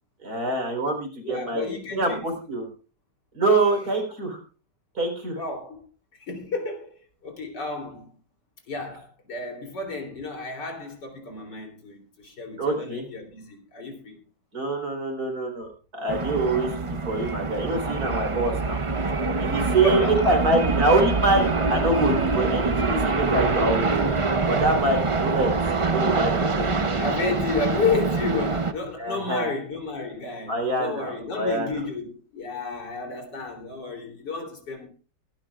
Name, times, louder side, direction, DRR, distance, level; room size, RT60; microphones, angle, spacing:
voice 1, 0.2-2.7 3.3-4.4 5.0-5.4 12.6-13.0 14.5-15.7 15.9-18.8 19.4-20.0 20.2-25.5 25.8-26.4 29.0-29.5 30.5-31.7, right 2 dB, 60° right, 4.7 m, -25 dB
voice 2, 1.2-2.3 5.3-5.8 6.2-8.1 8.7-14.2 19.6-20.4 26.3-34.9, left 3 dB, 80° left, 4.0 m, -31 dB
sound 1, 16.1-28.7, right 3 dB, 40° right, 0.4 m, -25 dB
23.0 x 12.0 x 2.4 m
omnidirectional pair, 1.9 m